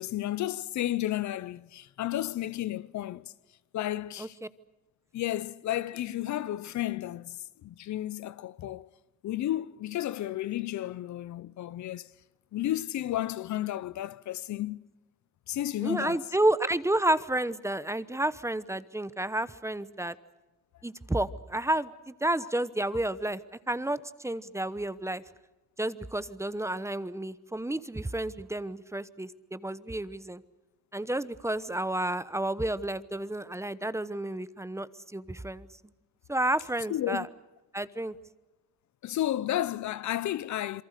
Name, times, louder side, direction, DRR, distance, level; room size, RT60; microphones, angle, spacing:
voice 1, 0.0-3.3 3.7-4.4 5.1-8.9 9.2-12.1 12.5-14.8 15.5-16.3 22.4-22.5 36.9-37.3 39.0-40.8, left 13 dB, 70° left, 0.8 m, -32 dB
voice 2, 15.8-20.1 20.8-23.4 23.7-25.2 25.8-30.4 30.9-35.7 36.3-37.3 37.7-38.1, right 1 dB, 10° right, 1.0 m, -31 dB
28.0 x 23.0 x 6.7 m
cardioid pair, 90°, 30 cm